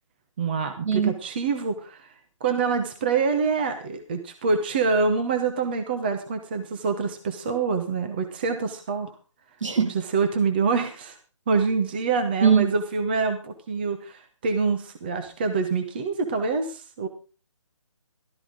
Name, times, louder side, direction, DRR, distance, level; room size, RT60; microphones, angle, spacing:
voice 1, 0.4-2.1 2.4-9.1 10.1-11.2 11.5-17.1, right 4 dB, 20° right, 0.9 m, -26 dB
voice 2, 9.6-10.0 12.4-12.7, right 7 dB, 70° right, 2.5 m, -20 dB
14.0 x 13.0 x 3.8 m
hypercardioid pair, 175°, 16 cm